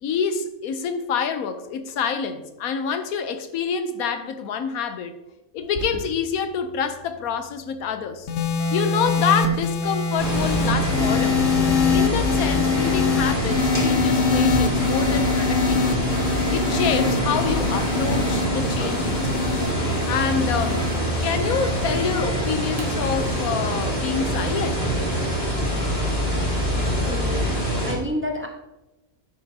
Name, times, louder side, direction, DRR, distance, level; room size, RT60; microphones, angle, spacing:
voice 1, 0.0-5.1 5.5-8.3 8.7-11.5 11.9-15.9 16.5-19.4 20.1-20.9 21.2-24.8, left 6 dB, 85° left, 9 dB, 1.2 m, -27 dB
Alarm, 5.6-25.0, right 3 dB, 65° right, 1.6 m, -40 dB
sound 1, 8.3-24.8 25.7-26.0, left 5 dB, 60° left, 1.3 m, -25 dB
sound 2, 10.2-27.9, equal, 30° left, 2.3 m, -25 dB
voice 2, 26.6-28.5, equal, 10° right, 0 dB, 1.0 m, -31 dB
10.5 x 7.8 x 2.8 m, 0.99 s
omnidirectional pair, 1.5 m